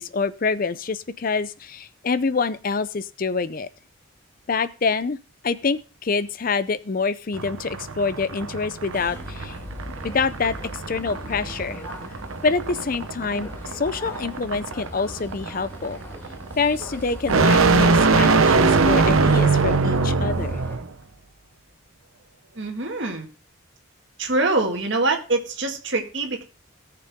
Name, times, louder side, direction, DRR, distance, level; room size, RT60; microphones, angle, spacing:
voice 1, 0.0-3.7 4.5-5.2 5.4-9.6 10.0-11.8 12.4-16.0 16.6-20.6, left 4 dB, 45° left, 15 dB, 0.5 m, -26 dB
sound 1, 7.3-20.9, right 4 dB, 85° right, 0.9 m, -22 dB
sound 2, 8.9-20.8, equal, 10° left, 2.6 m, -40 dB
voice 2, 22.6-23.3 24.2-26.4, right 2 dB, 60° right, 3 dB, 1.9 m, -24 dB
17.5 x 6.8 x 3.6 m, 0.33 s
head